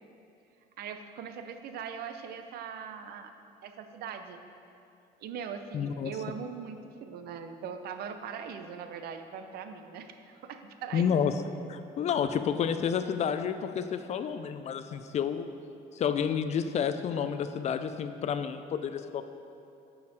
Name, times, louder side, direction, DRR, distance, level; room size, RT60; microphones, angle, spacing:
voice 1, 0.8-3.3 3.6-4.4 5.2-11.1, right 7 dB, 70° right, 8 dB, 0.6 m, -40 dB
voice 2, 5.7-6.1 10.9-11.3 11.7-15.5 15.9-19.2, left 7 dB, 40° left, 10 dB, 0.4 m, -30 dB
6.5 x 5.5 x 5.2 m, 2.7 s
cardioid pair, 110°, 17 cm